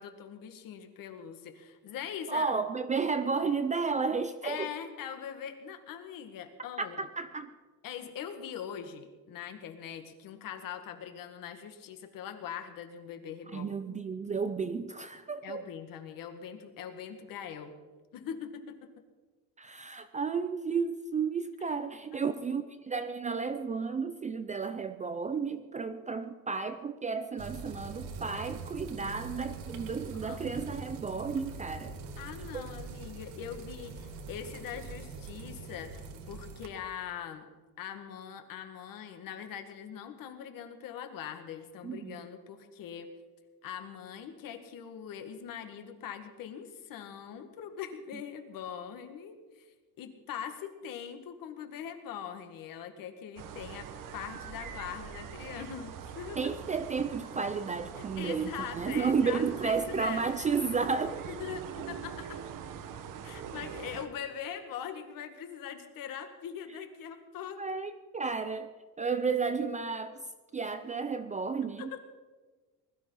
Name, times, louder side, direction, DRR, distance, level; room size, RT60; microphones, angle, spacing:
voice 1, 0.0-2.6 4.4-7.1 7.8-13.7 15.4-17.8 18.1-18.9 22.1-22.3 30.1-30.4 32.2-37.5 37.8-43.1 43.6-56.5 57.9-60.3 61.3-62.4 63.2-67.6 71.8-72.0, left 8 dB, 55° left, 7 dB, 1.9 m, -42 dB
voice 2, 2.3-4.7 6.8-7.5 13.5-15.7 19.6-32.0 32.5-32.6 41.8-42.2 56.4-61.3 67.6-68.7 69.0-70.2 70.5-71.9, right 5 dB, 20° right, 10 dB, 0.5 m, -32 dB
sound 1, 27.4-36.7, right 4 dB, 75° right, 2.1 m, -43 dB
sound 2, 53.4-64.1, right 8 dB, 50° right, 1.3 m, -43 dB
20.0 x 12.5 x 5.7 m, 1.3 s
cardioid pair, 150°, 40 cm